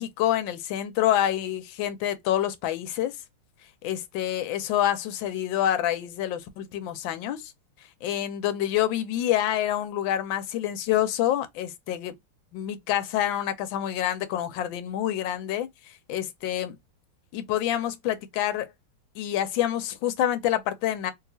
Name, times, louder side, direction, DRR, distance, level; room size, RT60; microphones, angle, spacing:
voice 1, 0.0-3.1 3.8-7.5 8.0-12.1 12.5-15.7 16.1-16.8 17.3-18.7 19.2-21.1, left 12 dB, 70° left, 1.3 m, -27 dB
3.2 x 2.8 x 2.7 m
omnidirectional pair, 2.4 m